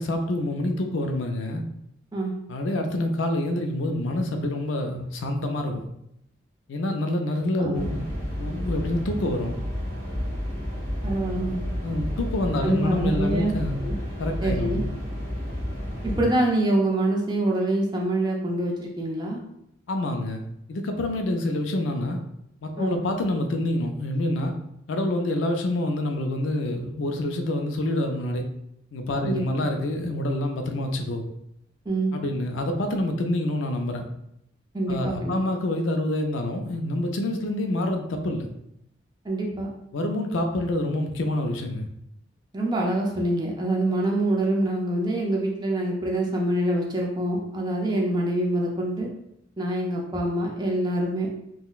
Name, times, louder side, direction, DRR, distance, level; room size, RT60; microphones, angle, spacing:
voice 1, 0.0-1.6 2.5-5.9 6.7-8.1 8.4-9.6 11.8-13.8 14.2-14.8 19.9-22.2 22.6-24.6 24.9-28.5 28.9-31.3 32.1-34.1 34.9-38.5 39.9-41.9, left 1 dB, 85° left, 4 dB, 0.4 m, -27 dB
sound 1, 7.7-16.2, equal, 65° right, 1.3 m, -31 dB
voice 2, 11.0-11.6 12.6-13.6 13.8-14.0 14.4-14.9 16.0-19.4 22.8-23.0 29.2-29.6 31.9-32.1 34.7-35.4 39.2-39.7 42.5-49.1 49.6-51.3, right 1 dB, 20° right, -1 dB, 0.5 m, -25 dB
3.7 x 2.1 x 2.3 m, 0.77 s
head